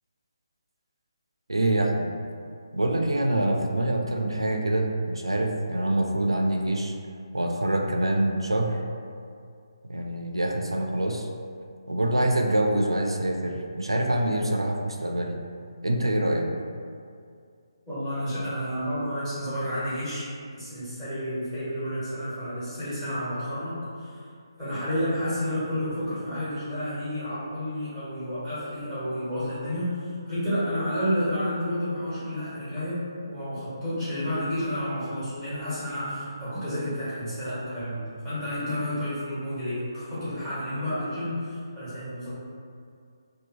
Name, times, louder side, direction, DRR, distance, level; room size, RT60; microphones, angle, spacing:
voice 1, 1.5-2.1 2.7-7.0 7.3-8.8 9.9-11.3 11.9-15.4 15.8-16.5, right 1 dB, 80° right, 2 dB, 0.3 m, -25 dB
voice 2, 17.9-20.3 20.6-24.2 24.6-42.3, equal, 10° left, -14 dB, 1.3 m, -30 dB
2.8 x 2.2 x 2.8 m, 2.3 s
figure-of-eight pair, 145°, 3 cm